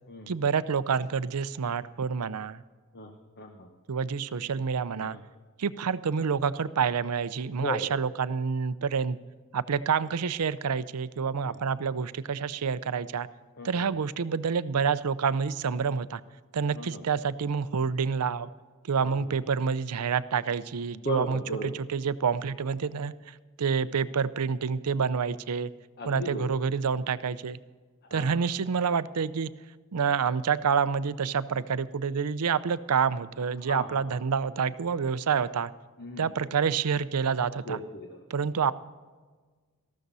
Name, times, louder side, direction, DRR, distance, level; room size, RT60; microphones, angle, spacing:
voice 1, 0.3-2.6 3.9-5.2 5.6-9.2 9.5-13.3 13.6-16.2 16.5-18.5 18.9-23.1 23.6-25.7 26.1-27.6 28.1-29.5 29.9-35.7 36.2-37.8 38.3-38.7, right 6 dB, 85° right, 15 dB, 0.5 m, -28 dB
voice 2, 2.9-3.7 5.0-5.2 7.5-8.0 11.4-11.6 13.6-13.9 16.7-17.0 19.0-19.3 20.9-21.8 26.0-26.5 28.1-28.4 33.6-34.2 36.0-36.3 37.6-38.2, left 1 dB, 50° left, 4 dB, 1.1 m, -37 dB
14.0 x 13.0 x 4.1 m, 1.4 s
head